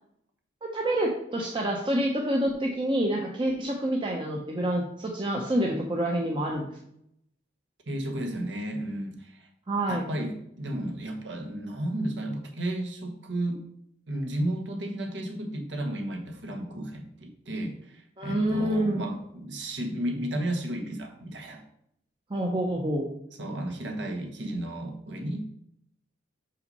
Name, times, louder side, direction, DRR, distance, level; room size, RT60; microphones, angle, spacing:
voice 1, 0.6-6.7 9.7-10.1 18.2-19.0 22.3-23.1, right 1 dB, 25° right, -1 dB, 0.8 m, -27 dB
voice 2, 7.9-9.5 9.9-13.6 14.1-21.6 23.4-25.4, right 1 dB, 70° right, 3 dB, 1.3 m, -33 dB
5.6 x 5.4 x 5.4 m, 0.75 s
head